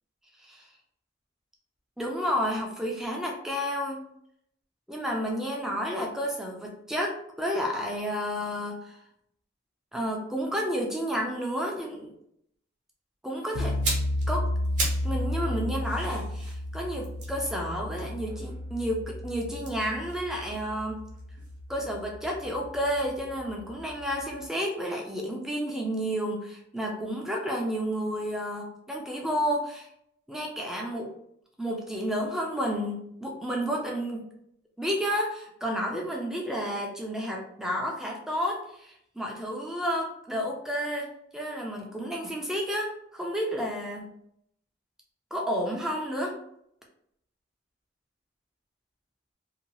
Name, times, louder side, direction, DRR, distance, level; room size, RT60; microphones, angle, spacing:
voice 1, 2.0-4.0 4.9-9.0 9.9-12.1 13.2-13.7 14.3-14.5 15.0-21.0 21.7-29.9 30.3-31.1 31.6-34.3 34.8-44.1 45.3-46.4, equal, ahead, -1 dB, 0.4 m, -31 dB
sound 1, 13.6-24.4, left 1 dB, 75° left, 0.3 m, -33 dB
sound 2, 13.6-15.2 15.5-18.7 19.5-21.6 21.8-22.0, right 2 dB, 40° right, 0.8 m, -37 dB
2.7 x 2.2 x 2.9 m, 0.74 s
head